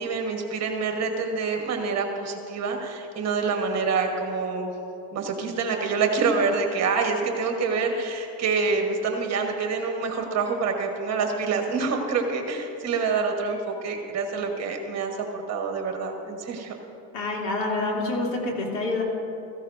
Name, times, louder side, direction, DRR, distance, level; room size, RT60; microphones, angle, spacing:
voice 1, 0.0-4.7 5.1-16.8, right 4 dB, 30° right, 3 dB, 1.3 m, -26 dB
voice 2, 17.1-19.0, left 2 dB, 65° left, -2 dB, 3.1 m, -27 dB
15.5 x 14.5 x 2.6 m, 3.0 s
supercardioid pair, 120°, 50 cm